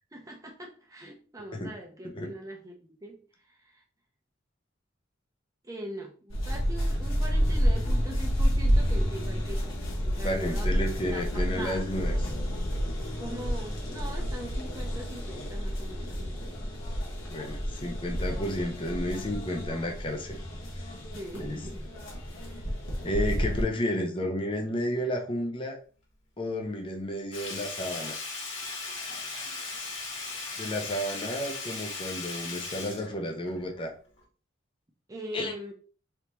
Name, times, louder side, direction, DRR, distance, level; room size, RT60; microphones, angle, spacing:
voice 1, 0.1-3.2 3.5-3.8 5.6-10.7 11.1-11.8 13.0-16.7 21.1-21.9 22.4-22.6 23.0-23.1 35.1-35.7, right 1 dB, 15° right, 0.6 m, -42 dB
sound 1, 6.3-23.6, equal, 85° left, 1.3 m, -30 dB
voice 2, 10.2-12.3 17.3-20.4 21.3-21.6 23.0-25.8 26.4-28.2 30.6-33.9 35.3-35.5, left 1 dB, 25° left, 0.6 m, -32 dB
Sink (filling or washing), 27.3-33.8 34.2-34.3, left 3 dB, 65° left, 1.8 m, -38 dB
3.9 x 3.3 x 3.0 m
head